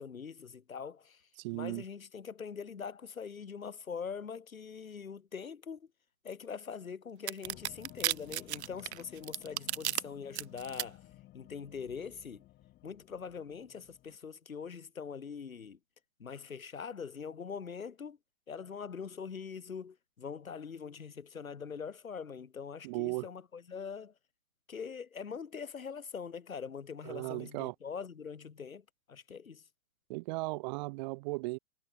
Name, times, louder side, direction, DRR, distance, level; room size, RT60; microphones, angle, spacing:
voice 1, 0.0-5.9 6.2-11.1 11.3-12.4 12.8-15.8 16.2-18.2 18.5-24.1 24.7-29.6, left 6 dB, 85° left, 3.5 m, -43 dB
voice 2, 1.4-1.8 22.8-23.3 27.1-27.7 30.1-31.6, right 24 dB, 35° right, 1.1 m, -36 dB
sound 1, 7.3-10.0 10.4-10.8, right 13 dB, 55° right, 0.9 m, -33 dB
sound 2, 7.4-14.2, left 16 dB, 25° left, 2.2 m, -56 dB
hypercardioid pair, 130°, 40 cm